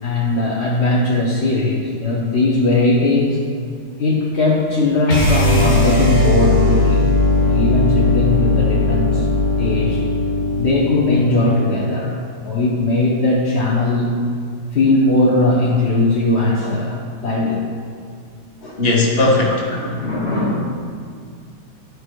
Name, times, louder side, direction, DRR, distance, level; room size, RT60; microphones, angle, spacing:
voice 1, 0.0-3.4 4.0-7.1 7.4-9.3 9.6-10.0 10.6-12.2 12.4-14.1 14.7-17.6 18.6-18.8 19.2-19.3 19.7-20.6, left 2 dB, 50° left, -4 dB, 0.8 m, -18 dB
sound 1, 5.1-11.2, left 2 dB, 85° left, 2.3 m, -17 dB
voice 2, 18.8-19.5, left 2 dB, 35° left, -1 dB, 1.0 m, -16 dB
11.0 x 4.7 x 4.6 m, 2.2 s
omnidirectional pair, 2.4 m